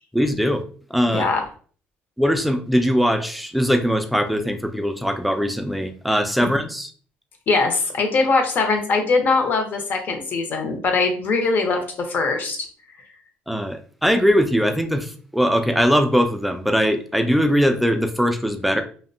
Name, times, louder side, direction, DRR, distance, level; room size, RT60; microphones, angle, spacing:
voice 1, 0.1-0.6 0.9-1.3 2.2-6.9 13.5-18.8, equal, ahead, 6 dB, 0.3 m, -21 dB
voice 2, 1.1-1.4 6.4-6.5 7.5-12.6, left 3 dB, 50° left, 4 dB, 0.7 m, -21 dB
2.7 x 2.1 x 2.6 m, 0.43 s
cardioid pair, 115°, 4 cm